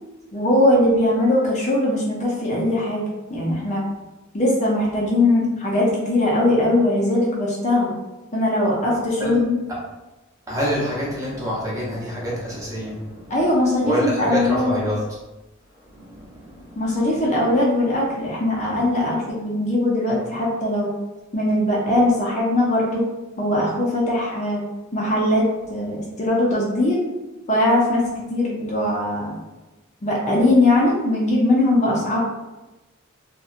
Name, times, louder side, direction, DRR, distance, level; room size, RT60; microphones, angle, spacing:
voice 1, 0.3-3.0 3.3-3.8 4.3-7.9 8.3-9.6 13.3-14.9 16.8-20.9 21.3-23.1 23.4-24.6 24.9-25.4 25.7-27.0 27.5-29.4 30.0-32.2, left 1 dB, 35° left, -4 dB, 0.5 m, -20 dB
voice 2, 10.5-13.4 13.8-15.0 15.9-17.0, equal, 15° right, -6 dB, 0.7 m, -27 dB
2.7 x 2.2 x 2.4 m, 1.1 s
head